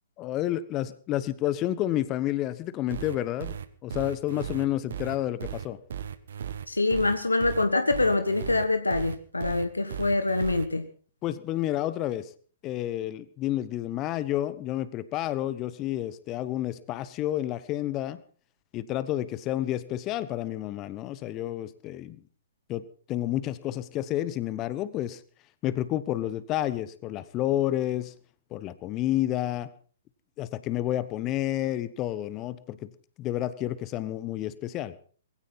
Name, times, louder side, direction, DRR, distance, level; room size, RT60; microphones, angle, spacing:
voice 1, 0.2-3.6 3.8-5.8 11.2-12.3 12.6-18.2 18.7-22.2 22.7-25.2 25.6-28.1 28.5-29.7 30.4-32.9 33.2-34.9, left 13 dB, 30° left, 15 dB, 1.1 m, -30 dB
sound 1, 2.9-10.7, right 8 dB, 60° right, 1.5 m, -36 dB
voice 2, 6.7-10.9, left 2 dB, 85° left, 9 dB, 1.4 m, -25 dB
20.5 x 16.5 x 4.1 m, 0.43 s
figure-of-eight pair, 115°, 0 cm